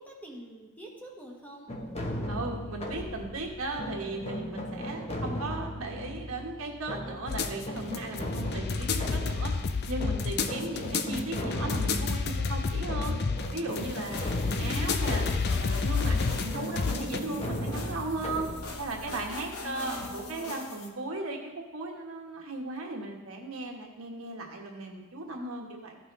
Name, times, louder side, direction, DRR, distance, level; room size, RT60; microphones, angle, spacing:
voice 1, 0.0-1.7 10.7-11.0 14.6-15.5 19.6-20.6, left 1 dB, 10° left, -1 dB, 1.2 m, -45 dB
sound 1, 1.7-20.4, equal, 30° left, 1.1 m, -37 dB
voice 2, 2.3-9.5 9.9-13.2 13.5-15.2 15.6-18.5 18.8-26.0, right 2 dB, 70° right, 0 dB, 1.4 m, -36 dB
sound 2, 7.3-17.2, left 4 dB, 50° left, 0.5 m, -30 dB
sound 3, 13.7-20.9, left 3 dB, 85° left, 1.0 m, -43 dB
14.5 x 5.7 x 3.3 m, 1.1 s
head